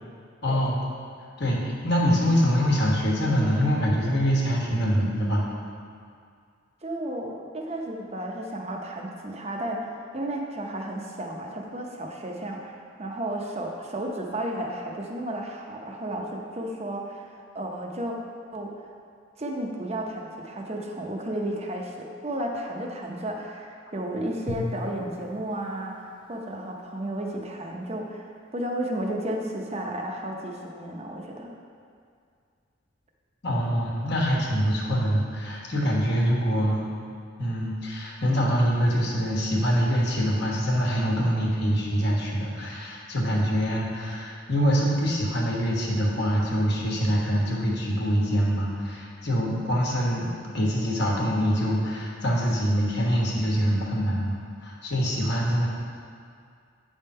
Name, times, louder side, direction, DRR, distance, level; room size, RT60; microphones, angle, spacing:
voice 1, 0.4-0.8 1.4-5.4 33.4-36.9 37.4-55.7, equal, 65° left, -3 dB, 1.3 m, -24 dB
voice 2, 6.8-18.1 18.5-18.7 19.4-31.5, right 1 dB, 35° right, 0 dB, 0.8 m, -33 dB
Drum, 24.5-26.9, left 2 dB, 25° left, 0.6 m, -38 dB
8.6 x 3.6 x 5.5 m, 2.3 s
head